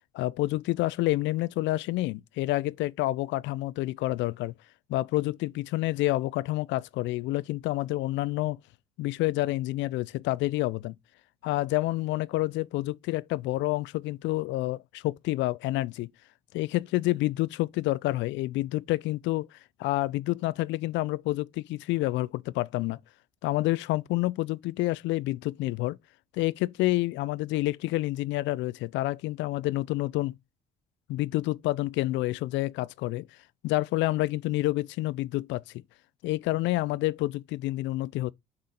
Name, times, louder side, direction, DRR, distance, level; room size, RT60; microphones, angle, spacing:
voice 1, 0.1-4.5 4.9-8.6 9.0-10.9 11.4-16.1 16.5-23.0 23.4-26.0 26.3-30.3 31.1-33.3 33.6-35.6 36.2-38.3, left 18 dB, 60° left, 0.4 m, -28 dB
6.6 x 3.6 x 4.1 m
hypercardioid pair, 55°, 21 cm